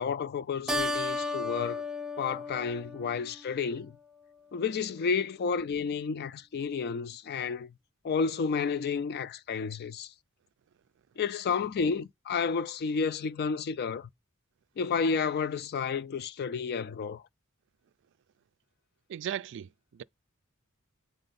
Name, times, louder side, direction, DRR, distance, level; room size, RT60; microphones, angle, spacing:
voice 1, 0.0-1.8 2.2-3.9 4.5-7.7 8.0-10.1 11.2-14.1 14.8-17.2, left 5 dB, 45° left, 0.4 m, -31 dB
Keyboard (musical), 0.7-3.6, left 2 dB, 5° right, 0.5 m, -34 dB
voice 2, 19.1-20.0, right 10 dB, 60° right, 0.3 m, -37 dB
8.8 x 3.9 x 4.0 m
head